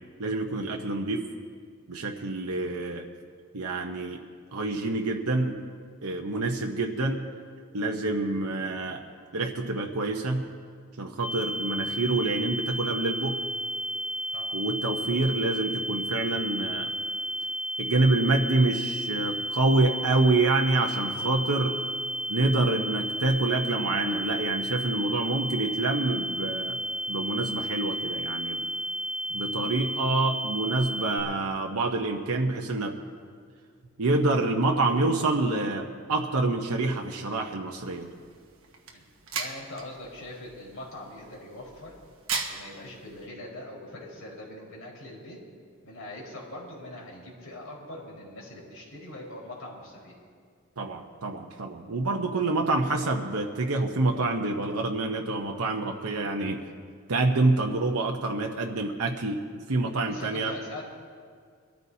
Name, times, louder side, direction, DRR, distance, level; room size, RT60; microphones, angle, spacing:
voice 1, 0.2-1.2 1.9-3.1 3.5-4.2 4.5-5.6 6.0-7.2 7.7-9.0 9.3-10.5 11.0-13.4 14.5-16.9 17.8-21.8 22.3-26.8 27.1-28.6 29.3-33.0 34.0-38.1 50.8-56.6 57.1-60.5, right 2 dB, 80° right, 1 dB, 0.9 m, -27 dB
sound 1, 11.2-31.2, right 1 dB, 10° right, 2.1 m, -33 dB
sound 2, 37.8-43.3, right 5 dB, 65° right, 1.4 m, -39 dB
voice 2, 39.3-41.9 42.5-45.4 45.8-50.1 60.0-60.8, left 1 dB, 70° left, -4 dB, 4.6 m, -42 dB
23.0 x 13.5 x 2.8 m, 2.1 s
head